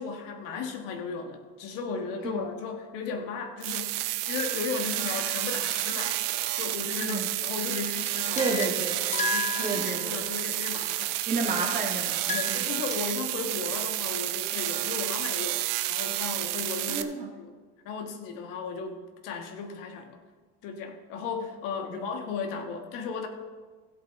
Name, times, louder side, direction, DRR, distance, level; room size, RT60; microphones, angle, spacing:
voice 1, 0.0-3.9 4.3-6.2 6.5-8.5 8.9-11.1 12.3-15.6 15.9-17.1 17.4-17.5 17.8-20.2 20.6-23.3, left 5 dB, 80° left, 4 dB, 1.6 m, -35 dB
sound 1, 3.6-17.0, right 16 dB, 75° right, 0.7 m, -30 dB
sound 2, 6.0-6.6 8.1-10.4 12.1-13.0, left 5 dB, 20° left, 0.6 m, -34 dB
voice 2, 8.3-9.0 9.6-10.2 11.3-12.6 16.9-17.3 21.9-22.0, right 3 dB, 25° right, 1 dB, 1.7 m, -31 dB
16.0 x 8.3 x 3.6 m, 1.4 s
cardioid pair, 150°, 32 cm